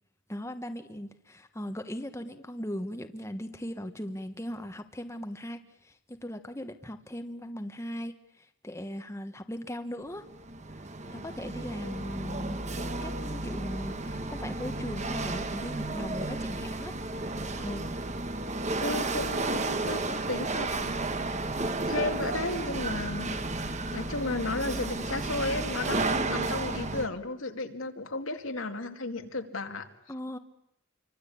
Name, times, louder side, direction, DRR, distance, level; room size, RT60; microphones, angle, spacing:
voice 1, 0.3-10.3 10.7-10.8 11.1-12.6 13.0-16.9 17.6-17.9 30.1-30.4, equal, 15° left, 7 dB, 1.2 m, -38 dB
Chatter / Hiss / Rattle, 10.2-27.1, right 2 dB, 35° right, 1.4 m, -33 dB
voice 2, 18.8-21.3 21.9-23.4 23.9-29.9, left 2 dB, 85° left, 5 dB, 2.4 m, -34 dB
28.0 x 24.5 x 8.6 m, 0.79 s
head